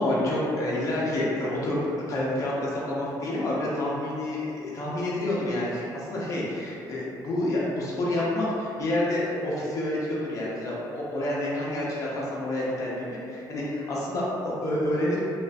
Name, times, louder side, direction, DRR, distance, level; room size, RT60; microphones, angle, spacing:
voice 1, 0.0-1.8 2.1-15.2, left 1 dB, 40° left, -6 dB, 0.6 m, -28 dB
2.4 x 2.4 x 2.2 m, 2.5 s
cardioid pair, 125°, 8 cm